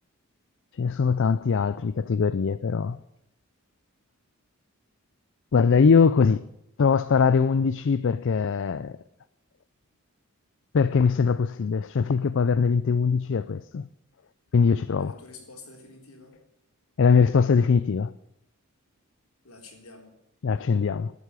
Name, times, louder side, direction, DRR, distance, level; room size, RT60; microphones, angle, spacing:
voice 1, 0.7-3.0 5.5-6.5 6.8-9.0 10.7-13.9 14.5-15.1 17.0-18.1 20.4-21.1, left 5 dB, 55° left, 0.4 m, -22 dB
voice 2, 15.0-16.4 19.4-20.2, left 3 dB, 70° left, 3.7 m, -48 dB
12.0 x 8.3 x 9.5 m
head